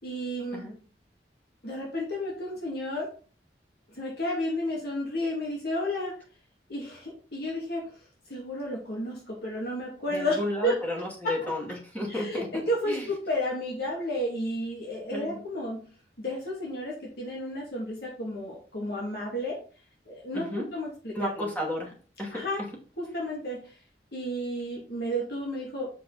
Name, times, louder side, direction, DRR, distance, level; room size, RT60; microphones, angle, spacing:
voice 1, 0.0-0.7 1.6-3.1 3.9-6.1 6.7-7.9 8.3-10.8 11.4-11.5 12.1-15.8 16.2-19.6 20.1-20.5 20.7-21.6 22.3-22.6 23.0-23.8 24.1-25.9, equal, 65° left, -3 dB, 2.3 m, -32 dB
voice 2, 10.1-12.5 12.9-13.1 15.1-15.4 20.3-20.7 21.1-21.9 22.2-22.4, left 1 dB, 10° left, -2 dB, 2.2 m, -32 dB
7.4 x 5.2 x 4.1 m, 0.40 s
head